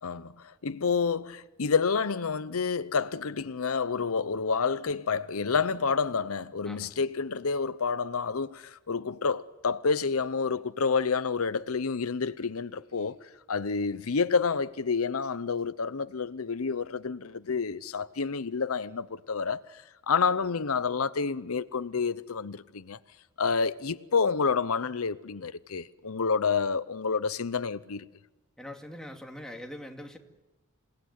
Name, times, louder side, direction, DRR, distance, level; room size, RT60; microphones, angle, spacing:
voice 1, 0.0-23.0 23.4-28.0, left 5 dB, 85° left, 0.8 m, -29 dB
voice 2, 28.6-30.2, left 1 dB, 5° left, 2.4 m, -42 dB
28.0 x 18.5 x 9.5 m
head